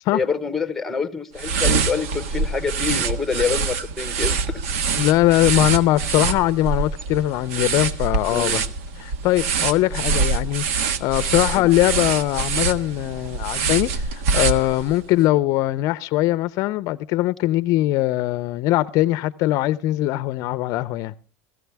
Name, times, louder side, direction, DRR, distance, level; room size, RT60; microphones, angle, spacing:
voice 1, 0.1-4.6 8.3-8.6 11.5-11.7, left 5 dB, 5° left, 1.1 m, -26 dB
sound 1, 1.4-15.1, right 5 dB, 80° right, 1.5 m, -25 dB
voice 2, 5.0-8.6 9.0-21.1, left 16 dB, 50° left, 0.6 m, -21 dB
17.5 x 15.0 x 3.4 m
supercardioid pair, 145°, 7 cm